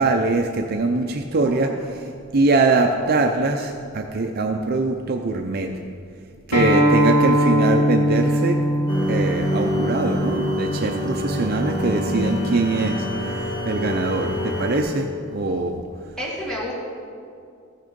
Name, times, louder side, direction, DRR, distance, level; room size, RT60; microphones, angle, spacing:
voice 1, 0.0-2.0 2.3-5.7 6.5-8.6 9.1-13.0 13.7-15.8, right 3 dB, 45° right, 4 dB, 0.5 m, -22 dB
voice 2, 1.3-1.9 16.2-16.7, equal, 5° left, -6 dB, 2.3 m, -31 dB
Acoustic guitar, 6.5-11.7, equal, 85° left, 2.6 m, -21 dB
sound 1, 8.9-14.8, left 1 dB, 40° left, 1.9 m, -26 dB
14.5 x 6.5 x 5.2 m, 2.3 s
head